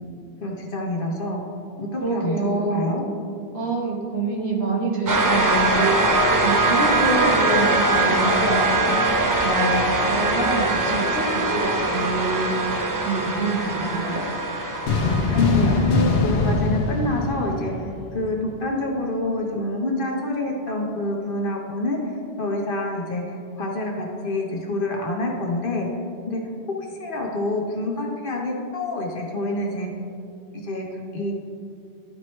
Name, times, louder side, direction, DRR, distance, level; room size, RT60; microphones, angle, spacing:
voice 1, 0.4-1.4 1.8-3.0 15.3-25.9 26.3-26.4 26.8-29.9 30.6-30.8 31.1-31.3, left 2 dB, 55° left, 0 dB, 1.1 m, -27 dB
voice 2, 2.0-2.9 3.5-8.7 9.4-12.6 13.0-14.2, right 2 dB, 65° right, -3 dB, 1.6 m, -26 dB
sound 1, 5.1-16.5, right 2 dB, 30° right, 0.3 m, -22 dB
sound 2, 14.9-18.3, left 3 dB, 70° left, 0.8 m, -22 dB
11.0 x 4.4 x 3.2 m, 2.5 s
omnidirectional pair, 1.1 m